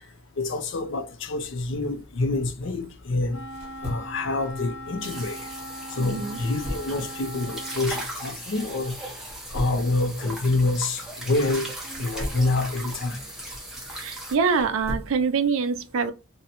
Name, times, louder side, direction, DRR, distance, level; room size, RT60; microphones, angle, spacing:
voice 1, 0.4-3.4 3.8-5.4 5.9-9.0 9.5-11.7 12.0-13.2, left 2 dB, 55° left, 0.4 m, -27 dB
sound 1, 3.2-5.7 6.0-11.3 11.7-15.5, equal, 25° right, 0.9 m, -40 dB
Wind instrument woodwind instrument, 3.3-7.9, equal, 80° left, 0.8 m, -39 dB
sound 2, 5.0-14.4, right 1 dB, ahead, 0.6 m, -38 dB
voice 2, 6.0-6.4 13.9-16.1, right 5 dB, 65° right, 0.4 m, -25 dB
2.6 x 2.1 x 2.8 m
head